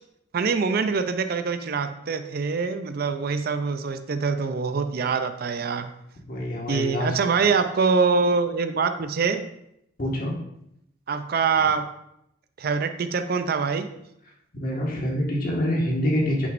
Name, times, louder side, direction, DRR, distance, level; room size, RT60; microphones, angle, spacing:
voice 1, 0.3-5.9 6.7-9.5 11.1-11.9 12.6-13.9, right 5 dB, 50° right, 9 dB, 0.4 m, -24 dB
voice 2, 6.3-7.2 10.0-10.3 14.5-16.5, equal, 45° left, -3 dB, 1.6 m, -26 dB
8.8 x 6.2 x 2.5 m, 0.80 s
head